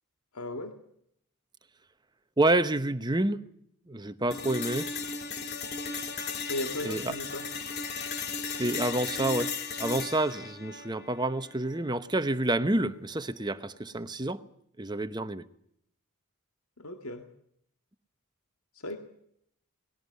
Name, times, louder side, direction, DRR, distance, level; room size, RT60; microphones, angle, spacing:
voice 1, 0.3-0.7 6.5-7.5 16.8-17.2 18.8-19.0, left 1 dB, 75° left, 2.1 m, -36 dB
voice 2, 2.4-3.5 3.9-4.9 6.8-7.1 8.6-9.5 9.8-14.4 14.8-15.4, right 2 dB, 20° right, 0.9 m, -28 dB
sound 1, 4.3-12.3, left 4 dB, 45° left, 2.2 m, -36 dB
20.0 x 17.0 x 9.4 m
head